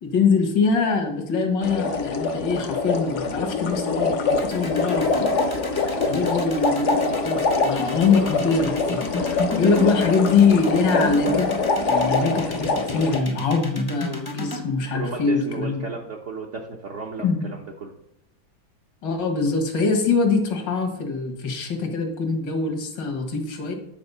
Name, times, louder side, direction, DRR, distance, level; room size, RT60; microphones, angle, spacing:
voice 1, 0.0-5.3 6.0-11.5 11.8-15.9 17.2-17.5 19.0-23.7, left 4 dB, 75° left, 4 dB, 2.0 m, -23 dB
sound 1, 1.6-13.2, left 3 dB, 55° left, 0.9 m, -24 dB
sound 2, 4.3-14.6, left 2 dB, 20° left, 0.6 m, -32 dB
voice 2, 14.9-17.9, right 4 dB, 55° right, 0 dB, 0.9 m, -34 dB
9.6 x 4.2 x 5.4 m, 0.77 s
omnidirectional pair, 2.0 m